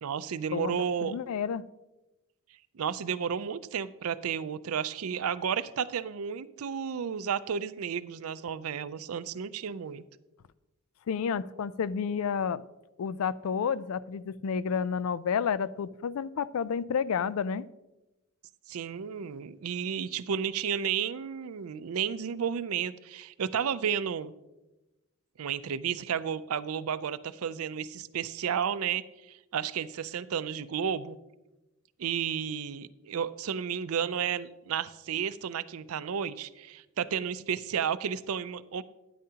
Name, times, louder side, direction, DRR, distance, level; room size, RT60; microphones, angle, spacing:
voice 1, 0.0-1.1 2.7-10.0 18.7-24.3 25.4-31.2 32.0-38.8, right 7 dB, 80° right, 15 dB, 0.5 m, -32 dB
voice 2, 0.5-1.6 11.1-12.6 13.0-17.7, left 6 dB, 70° left, 18 dB, 0.4 m, -30 dB
12.0 x 10.0 x 2.9 m, 1.0 s
head